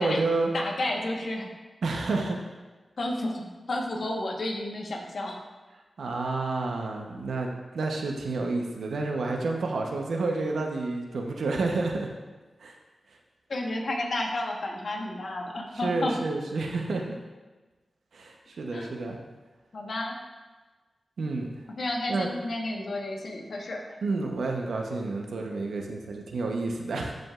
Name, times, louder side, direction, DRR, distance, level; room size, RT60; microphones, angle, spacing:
voice 1, 0.0-0.5 1.8-2.4 6.0-12.1 12.6-12.7 15.8-17.2 18.1-19.2 21.2-21.5 22.1-22.3 24.0-27.1, right 3 dB, 85° right, 2 dB, 0.9 m, -29 dB
voice 2, 0.5-1.5 3.0-5.4 13.5-16.2 18.7-19.0 19.7-20.2 21.8-23.8, left 1 dB, 70° left, 0 dB, 1.2 m, -31 dB
13.0 x 5.1 x 2.5 m, 1.3 s
cardioid pair, 45°, 0 cm